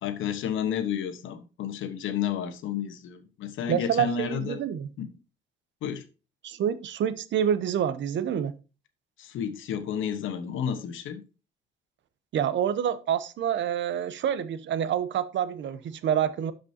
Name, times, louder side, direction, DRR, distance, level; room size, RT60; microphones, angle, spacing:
voice 1, 0.0-4.6 5.0-5.1 5.8-6.0 9.2-11.2, left 8 dB, 80° left, 9 dB, 1.2 m, -31 dB
voice 2, 3.7-4.9 6.4-8.5 12.3-16.5, right 9 dB, 70° right, 14 dB, 0.8 m, -27 dB
12.0 x 5.1 x 2.8 m, 0.32 s
cardioid pair, 90°, 20 cm